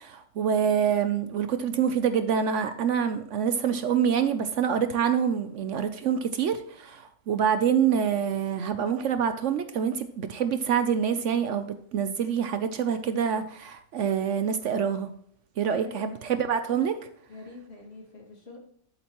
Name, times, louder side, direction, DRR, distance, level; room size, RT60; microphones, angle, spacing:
voice 1, 0.0-15.1 15.6-16.1 16.4-17.0, right 7 dB, 65° right, 10 dB, 0.9 m, -26 dB
voice 2, 15.6-16.1 17.3-18.6, left 2 dB, 50° left, 0 dB, 2.4 m, -44 dB
11.0 x 8.6 x 3.0 m, 0.68 s
omnidirectional pair, 1.5 m